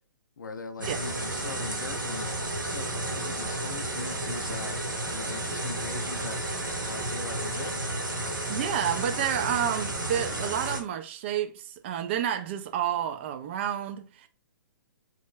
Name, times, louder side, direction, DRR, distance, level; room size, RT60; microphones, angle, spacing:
voice 1, 0.4-2.3 2.6-4.8 5.1-6.4 6.9-7.7, left 4 dB, 65° left, 0.4 m, -41 dB
sound 1, 0.8-10.8, right 1 dB, 70° right, 1.0 m, -32 dB
voice 2, 8.5-14.3, right 10 dB, 35° right, 0.4 m, -30 dB
3.0 x 2.1 x 3.5 m
figure-of-eight pair, 125°, 11 cm